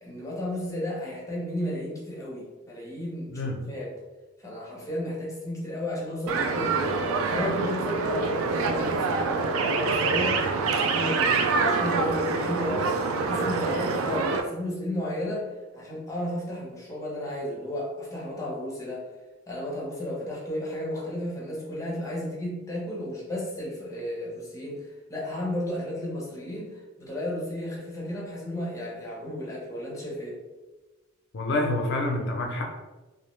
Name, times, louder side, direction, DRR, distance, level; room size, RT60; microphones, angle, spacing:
voice 1, 0.0-3.9 4.4-10.5 10.8-15.5 15.7-19.1 19.5-30.4, left 1 dB, 15° left, -5 dB, 0.6 m, -33 dB
voice 2, 3.3-3.6 31.3-32.7, left 1 dB, 55° left, 1 dB, 0.5 m, -27 dB
sound 1, 6.3-14.4, right 4 dB, 75° right, 0.3 m, -26 dB
2.5 x 2.1 x 3.0 m, 1.2 s
head